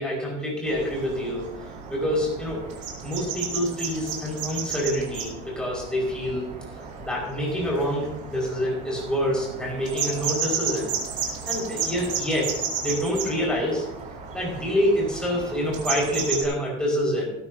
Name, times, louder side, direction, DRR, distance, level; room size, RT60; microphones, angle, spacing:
voice 1, 0.0-2.6 3.0-6.5 6.8-10.9 11.5-13.9 14.3-17.3, equal, 5° left, -4 dB, 5.6 m, -27 dB
sound 1, 0.6-16.4, right 6 dB, 45° right, 4.2 m, -33 dB
18.5 x 12.5 x 2.9 m, 0.84 s
cardioid pair, 145°, 19 cm